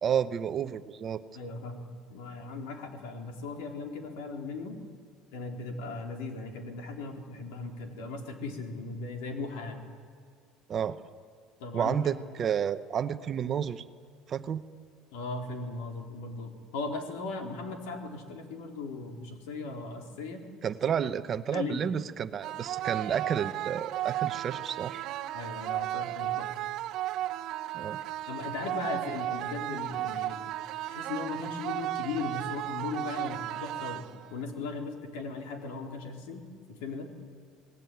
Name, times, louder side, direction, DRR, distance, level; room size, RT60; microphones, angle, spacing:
voice 1, 0.0-1.2 10.7-11.0 11.7-13.8 14.3-14.6 20.6-25.0 27.7-28.0, right 8 dB, 25° right, 11 dB, 0.8 m, -31 dB
voice 2, 1.3-4.8 5.3-9.8 11.6-12.0 15.1-20.5 21.5-21.8 25.3-26.5 28.3-30.4 30.9-34.0 34.3-36.4 36.7-37.1, left 3 dB, 85° left, 4 dB, 4.0 m, -38 dB
sound 1, 22.4-34.4, right 14 dB, 45° right, 1.1 m, -34 dB
27.5 x 19.5 x 9.4 m, 2.2 s
cardioid pair, 170°, 0 cm